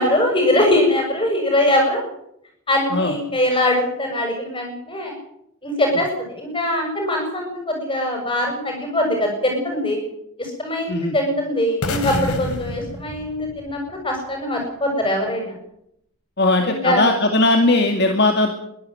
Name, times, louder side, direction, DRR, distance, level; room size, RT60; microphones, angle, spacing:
voice 1, 0.0-2.0 2.7-5.1 5.6-10.0 10.4-15.5 16.6-17.0, left 1 dB, 25° left, 2 dB, 7.3 m, -22 dB
sound 1, 11.8-13.9, left 2 dB, 90° left, 3.0 m, -28 dB
voice 2, 16.4-18.5, left 2 dB, 50° left, 4 dB, 2.2 m, -18 dB
23.0 x 12.5 x 9.3 m, 0.77 s
head